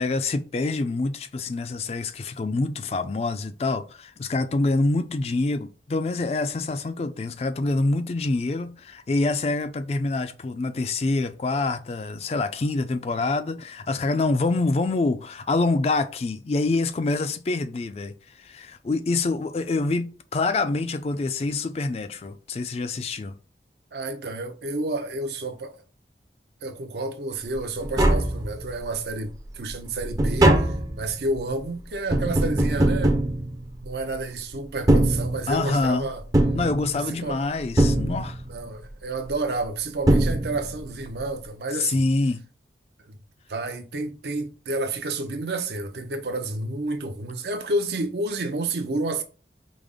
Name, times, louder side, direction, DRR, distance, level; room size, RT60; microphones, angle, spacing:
voice 1, 0.0-23.3 35.5-36.1 36.5-38.4 41.8-42.4, left 3 dB, 35° left, 0.3 m, -26 dB
voice 2, 23.9-25.8 26.6-33.2 33.8-36.2 36.9-37.4 38.5-42.1 43.1-43.2 43.5-49.2, right 2 dB, 70° right, 0.6 m, -30 dB
Tap, 27.5-27.6 27.8-28.9 29.4-34.1 34.7-35.8 36.3-37.3 37.8-38.6 39.6-39.7 40.1-40.9 41.2-41.3, right 1 dB, 20° right, 0.5 m, -22 dB
5.0 x 2.0 x 3.6 m
head